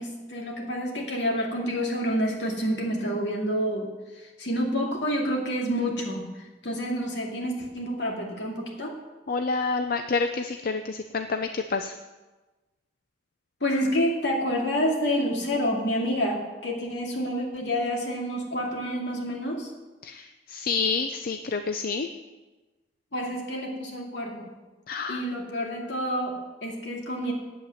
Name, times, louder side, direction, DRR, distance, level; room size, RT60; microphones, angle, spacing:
voice 1, 0.0-9.0 13.6-19.7 23.1-24.5 25.1-27.3, equal, 75° left, -1 dB, 2.5 m, -28 dB
voice 2, 9.3-11.9 20.0-22.1 24.9-25.2, left 4 dB, 55° left, 7 dB, 0.5 m, -28 dB
8.5 x 8.5 x 7.8 m, 1.2 s
head